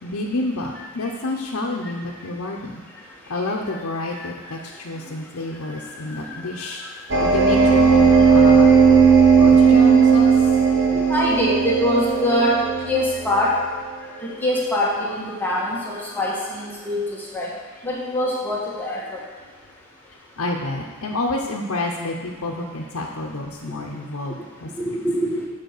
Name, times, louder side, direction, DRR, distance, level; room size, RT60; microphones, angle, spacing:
voice 1, 0.0-2.8 3.3-6.8 7.2-9.0 9.3-10.5 15.3-15.6 15.9-16.2 20.4-24.7, left 2 dB, 90° left, -1 dB, 0.8 m, -29 dB
voice 2, 6.1-6.7 7.1-7.2 10.9-12.6 12.8-13.5 14.2-17.5 17.8-19.2 24.8-25.4, left 1 dB, 10° left, -6 dB, 1.6 m, -24 dB
sound 1, 7.1-13.6, right 5 dB, 55° right, 1.0 m, -15 dB
7.9 x 5.6 x 6.6 m, 1.5 s
head